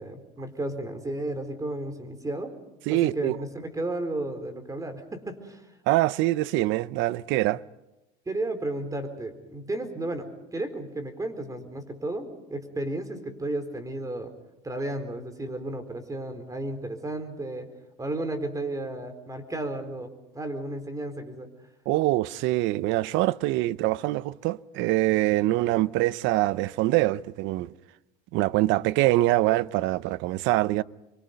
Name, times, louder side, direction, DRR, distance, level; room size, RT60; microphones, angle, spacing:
voice 1, 0.0-2.5 2.9-5.7 8.3-14.3 14.6-17.7 18.0-21.5, right 2 dB, 15° right, 4.2 m, -33 dB
voice 2, 2.9-3.4 5.9-7.6 21.9-27.7 28.3-30.8, right 17 dB, 70° right, 0.8 m, -24 dB
27.0 x 23.5 x 5.3 m
supercardioid pair, 105°, 20 cm